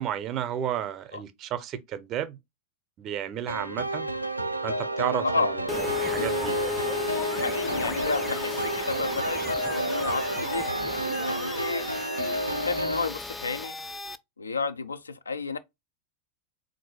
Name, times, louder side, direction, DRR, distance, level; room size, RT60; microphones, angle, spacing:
voice 1, 0.0-2.4 3.0-4.1 4.6-6.6, right 10 dB, 35° right, 0.6 m, -32 dB
sound 1, 3.5-13.1, right 1 dB, 90° right, 0.4 m, -30 dB
sound 2, 5.7-14.2, left 4 dB, 10° left, 0.3 m, -35 dB
voice 2, 7.3-11.8 12.5-13.7 14.4-15.6, left 4 dB, 75° left, 0.4 m, -32 dB
3.9 x 2.5 x 4.6 m
figure-of-eight pair, 90°, 0 cm